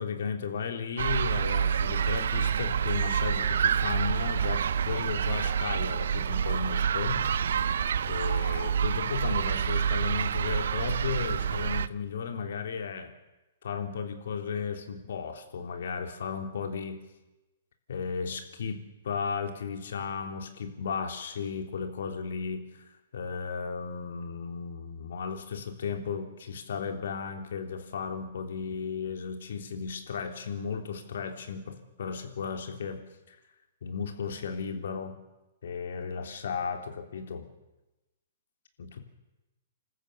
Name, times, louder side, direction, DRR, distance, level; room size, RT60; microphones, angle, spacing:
voice 1, 0.0-7.3 8.0-13.1 13.6-17.0 17.9-33.4 33.8-35.2 35.6-37.5 38.8-39.0, left 6 dB, 70° left, 6 dB, 3.3 m, -35 dB
sound 1, 1.0-11.9, right 8 dB, 70° right, 0.7 m, -28 dB
27.0 x 14.0 x 8.4 m, 1.0 s
hypercardioid pair, 130°, 0 cm